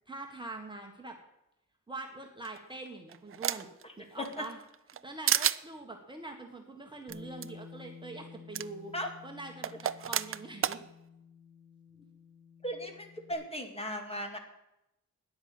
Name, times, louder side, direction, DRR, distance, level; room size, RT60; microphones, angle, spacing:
voice 1, 0.1-1.2 1.9-3.7 4.0-4.6 5.0-8.9 9.2-10.8, right 2 dB, 15° right, 1 dB, 1.5 m, -44 dB
sound 1, 2.4-3.8 4.3-5.0 5.3-5.6 7.1-7.2 7.4-7.5 8.5-8.7 9.6-10.8, right 9 dB, 45° right, 0.5 m, -30 dB
voice 2, 3.8-4.5 8.9-9.1 12.6-14.4, equal, 20° left, 4 dB, 2.1 m, -37 dB
Bass guitar, 7.1-13.3, left 5 dB, 55° left, 5.8 m, -52 dB
13.0 x 10.5 x 7.7 m, 0.88 s
wide cardioid pair, 165°, 30 cm